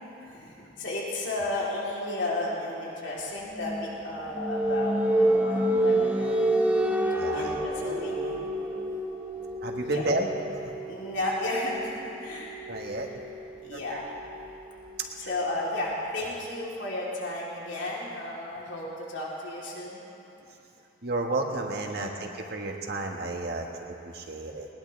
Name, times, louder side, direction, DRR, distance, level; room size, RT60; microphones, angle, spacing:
voice 1, 0.2-6.5 7.3-8.4 9.8-10.0 10.8-12.6 13.1-13.2 13.6-14.1 15.2-20.0 21.9-22.2, left 2 dB, 75° left, -5 dB, 3.6 m, -33 dB
sound 1, 3.6-15.1, right 1 dB, 10° right, 1.0 m, -29 dB
voice 2, 7.2-7.6 9.6-10.3 12.7-13.1 13.7-14.0 15.2-15.3 21.0-24.7, right 2 dB, 55° right, 2 dB, 1.6 m, -31 dB
21.0 x 20.0 x 3.5 m, 2.9 s
head